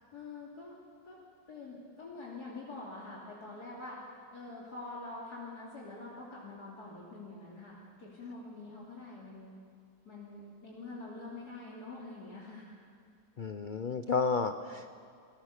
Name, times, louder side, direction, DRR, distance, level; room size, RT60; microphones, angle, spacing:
voice 1, 0.1-0.8 1.0-1.2 1.5-4.0 4.3-9.6 10.0-12.6, left 3 dB, 60° left, -5 dB, 3.2 m, -45 dB
voice 2, 13.4-14.9, left 4 dB, 85° left, 9 dB, 0.4 m, -32 dB
27.0 x 19.0 x 6.6 m, 2.3 s
omnidirectional pair, 1.9 m